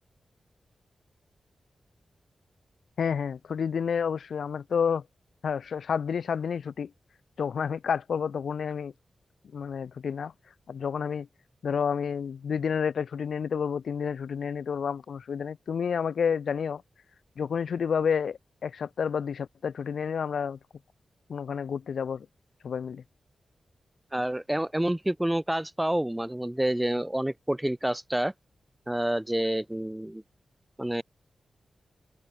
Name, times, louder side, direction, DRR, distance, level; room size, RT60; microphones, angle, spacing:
voice 1, 3.0-5.0 5.4-6.9 7.4-8.9 9.5-10.3 10.7-11.3 11.6-16.8 17.4-20.6 21.3-22.3 22.6-23.0, left 6 dB, 80° left, 3.2 m, -30 dB
voice 2, 24.1-28.3 28.9-30.2 30.8-31.0, right 1 dB, 10° right, 2.5 m, -28 dB
open air
wide cardioid pair, 115°, 0 cm